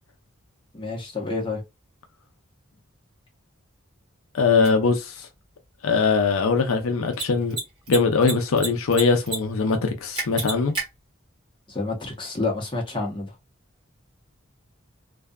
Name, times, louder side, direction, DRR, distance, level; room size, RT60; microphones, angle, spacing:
voice 1, 0.7-1.6 11.7-13.3, left 3 dB, 25° left, 0.8 m, -29 dB
voice 2, 4.3-5.3 5.8-7.6 7.9-10.7, left 4 dB, 80° left, 0.5 m, -21 dB
Mechanisms, 4.6-4.7 7.0-7.2 7.5-7.6 7.9-8.7 8.9-9.4 9.6-9.7 10.2-10.8, right 3 dB, 20° right, 1.3 m, -28 dB
2.6 x 2.3 x 2.3 m
head